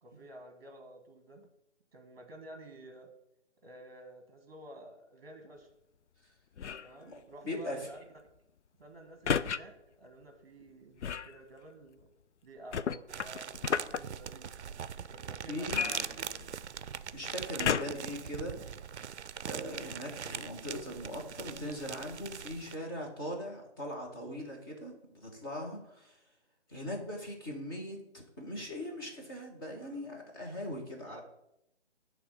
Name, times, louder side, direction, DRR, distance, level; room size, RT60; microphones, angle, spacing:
voice 1, 0.0-1.5 1.9-3.1 3.6-5.7 6.7-8.0 8.8-12.1 12.4-14.5 15.1-16.6 19.8-20.1 31.0-31.2, right 1 dB, 35° right, 5 dB, 1.2 m, -51 dB
sound 1, 6.6-7.0 9.3-9.6 11.0-11.3 12.7-14.0 15.7-16.7 17.6-18.1 18.8-18.9, left 7 dB, 75° left, 0.5 m, -32 dB
voice 2, 7.5-7.9 15.4-15.9 17.1-18.6 19.5-26.2 26.7-31.2, equal, 20° left, -1 dB, 1.3 m, -40 dB
sound 2, 13.1-22.8, right 8 dB, 70° right, 0.5 m, -42 dB
9.4 x 3.5 x 6.6 m, 0.80 s
hypercardioid pair, 165°, 35 cm